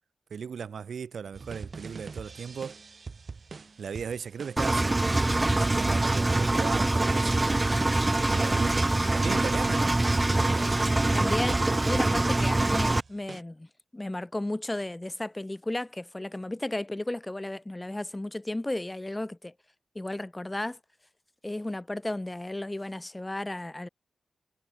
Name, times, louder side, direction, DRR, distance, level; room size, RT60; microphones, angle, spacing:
voice 1, 0.3-2.8 3.8-7.5 8.2-8.8 9.1-10.0, right 6 dB, 70° right, 1.3 m, -37 dB
sound 1, 1.3-13.4, right 4 dB, 40° right, 4.1 m, -44 dB
Engine, 4.6-13.0, right 2 dB, 20° right, 0.5 m, -24 dB
voice 2, 11.1-19.5 19.9-20.8 21.4-23.9, left 1 dB, 15° left, 4.7 m, -34 dB
wide cardioid pair, 115°, 0 cm